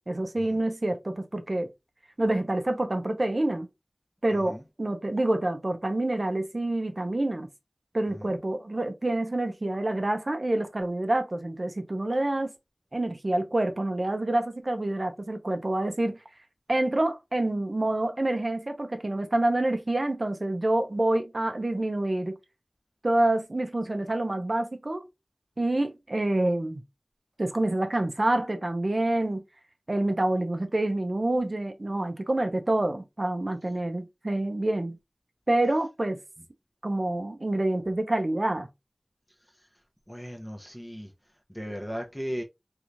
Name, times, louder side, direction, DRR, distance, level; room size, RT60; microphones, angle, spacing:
voice 1, 0.1-1.7 2.2-3.7 4.2-7.5 7.9-12.5 12.9-16.2 16.7-22.4 23.0-25.0 25.6-26.8 27.4-29.4 29.9-35.0 35.5-36.2 36.8-38.7, right 1 dB, 50° right, 0.7 m, -27 dB
voice 2, 4.3-4.6 8.1-8.3 40.1-41.1 41.5-42.4, equal, 5° left, 0.7 m, -37 dB
3.3 x 3.0 x 2.5 m
wide cardioid pair, 50°, 0 cm